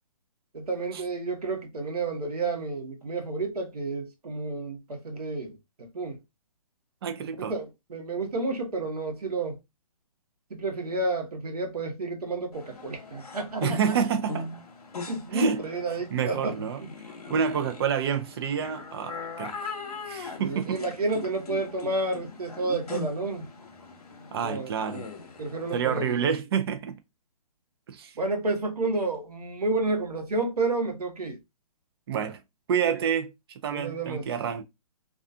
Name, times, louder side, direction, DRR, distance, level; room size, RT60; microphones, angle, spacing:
voice 1, 0.5-5.6 5.9-6.2 7.5-9.6 10.5-13.8 15.1-16.9 17.3-17.4 20.4-23.4 24.4-24.7 25.4-26.2 28.2-31.4 33.7-34.2, right 3 dB, 85° right, 1.0 m, -30 dB
voice 2, 7.0-7.6 13.6-14.5 15.3-15.7 16.1-16.8 17.3-19.7 20.1-20.8 24.3-25.1 25.7-27.0 27.9-28.1 32.1-32.4 32.7-34.6, right 7 dB, 40° right, 0.5 m, -28 dB
sound 1, 12.5-26.2, left 3 dB, 80° left, 0.8 m, -40 dB
2.4 x 2.3 x 2.5 m
hypercardioid pair, 135°, 19 cm